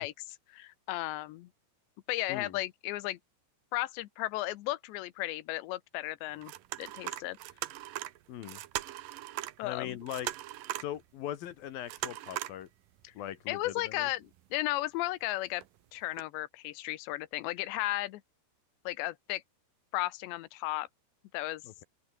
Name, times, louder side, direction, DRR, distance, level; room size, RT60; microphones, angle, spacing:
voice 1, 0.0-1.5 2.1-3.2 3.7-6.5 6.8-7.4 9.6-10.0 13.0-13.1 13.5-15.6 15.9-18.2 18.9-19.4 19.9-20.9 21.3-21.6, left 17 dB, 85° left, 3.2 m, -35 dB
sound 1, 6.4-9.6 9.9-11.0 11.8-12.6 13.0-13.1 14.2-14.6 15.6-15.7 16.2-16.3, right 15 dB, 75° right, 2.1 m, -39 dB
voice 2, 8.3-8.6 9.6-10.3 10.8-12.7 13.2-14.1 21.6-21.8, left 11 dB, 65° left, 2.7 m, -40 dB
open air
omnidirectional pair, 5.1 m